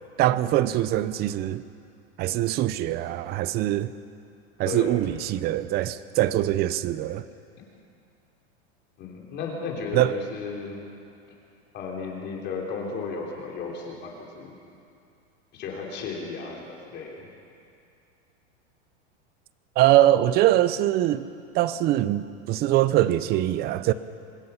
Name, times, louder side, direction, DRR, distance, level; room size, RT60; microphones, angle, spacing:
voice 1, 0.2-1.6 2.2-3.9 4.6-7.2 9.9-10.2 19.8-21.3 21.5-23.9, right 14 dB, 30° right, 15 dB, 0.6 m, -23 dB
voice 2, 4.7-5.0 9.0-10.9 11.7-14.5 15.5-17.3, left 4 dB, 30° left, -1 dB, 3.6 m, -34 dB
25.0 x 21.0 x 5.8 m, 2.5 s
supercardioid pair, 150°, 34 cm